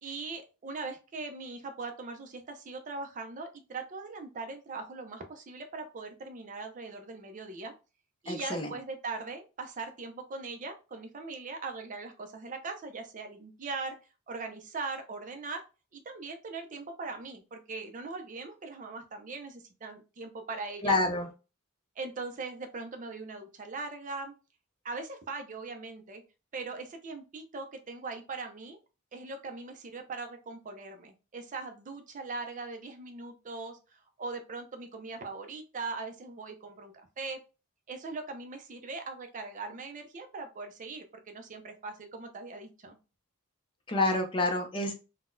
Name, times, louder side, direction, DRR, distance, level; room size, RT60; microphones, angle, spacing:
voice 1, 0.0-7.7 8.2-14.0 14.3-15.6 15.9-21.0 22.0-24.3 24.8-26.2 26.5-28.8 29.1-37.4 37.9-43.0, right 3 dB, 35° right, 6 dB, 0.4 m, -40 dB
voice 2, 8.3-8.7 20.8-21.3 43.9-44.9, left 2 dB, 25° left, 4 dB, 0.5 m, -28 dB
3.8 x 2.1 x 2.5 m, 0.31 s
head